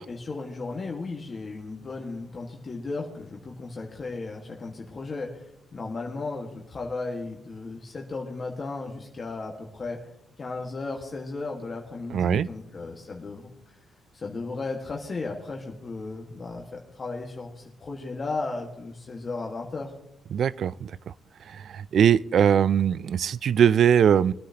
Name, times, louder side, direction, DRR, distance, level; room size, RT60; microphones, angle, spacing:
voice 1, 0.1-5.4 5.7-10.0 10.4-13.5 14.1-19.9, left 3 dB, 40° left, 0 dB, 1.7 m, -35 dB
voice 2, 12.1-12.5 20.3-20.9 21.5-24.3, right 8 dB, 65° right, 19 dB, 0.4 m, -21 dB
23.0 x 9.7 x 2.9 m, 0.82 s
cardioid pair, 95°, 0 cm